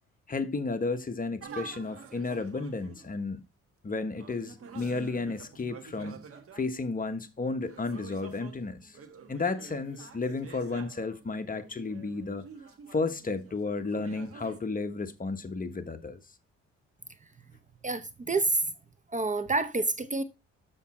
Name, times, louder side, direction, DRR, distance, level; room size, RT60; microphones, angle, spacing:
voice 1, 0.3-3.4 3.8-6.2 6.5-9.0 9.3-12.5 12.9-16.2, left 3 dB, 30° left, 1.2 m, -33 dB
sound 1, 1.4-3.2 4.2-6.7 7.5-14.6, right 6 dB, 50° right, 1.5 m, -48 dB
voice 2, 17.8-18.7 19.1-20.2, right 3 dB, 25° right, 0.7 m, -28 dB
7.1 x 7.1 x 4.3 m
cardioid pair, 90°, 30 cm